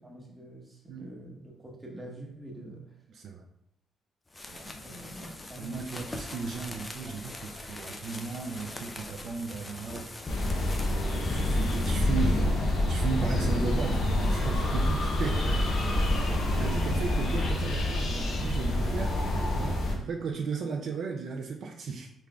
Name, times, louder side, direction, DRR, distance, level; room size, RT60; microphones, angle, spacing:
voice 1, 0.0-3.0 4.6-5.8 11.2-11.5, right 1 dB, 20° right, -1 dB, 0.9 m, -45 dB
voice 2, 3.1-3.5 4.5-4.7 5.6-10.1 10.9-19.2 19.5-22.1, right 5 dB, 65° right, 2 dB, 0.3 m, -36 dB
sound 1, 4.3-12.0, left 2 dB, 20° left, 0.4 m, -42 dB
sound 2, 10.3-19.9, left 1 dB, 65° left, 0.8 m, -27 dB
3.8 x 3.3 x 2.2 m, 0.75 s
cardioid pair, 90°, 0 cm